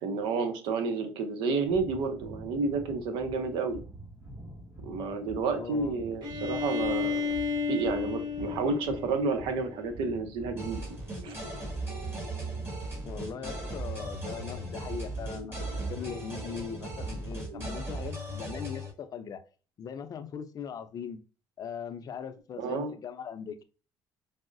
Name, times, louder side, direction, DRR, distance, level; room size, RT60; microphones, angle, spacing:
voice 1, 0.0-3.8 4.8-7.4 7.7-10.8 11.2-11.4 22.6-22.9, right 4 dB, 80° right, 0.6 m, -30 dB
sound 1, 1.6-18.1, right 1 dB, 45° right, 1.6 m, -46 dB
voice 2, 5.6-6.0 13.0-19.4 19.8-21.2 21.6-23.6, left 7 dB, 50° left, 0.5 m, -40 dB
Bowed string instrument, 6.2-10.0, left 5 dB, 60° right, 1.0 m, -32 dB
sound 2, 10.6-18.9, right 2 dB, 30° right, 1.7 m, -37 dB
4.7 x 2.0 x 2.5 m
supercardioid pair, 80°, 8 cm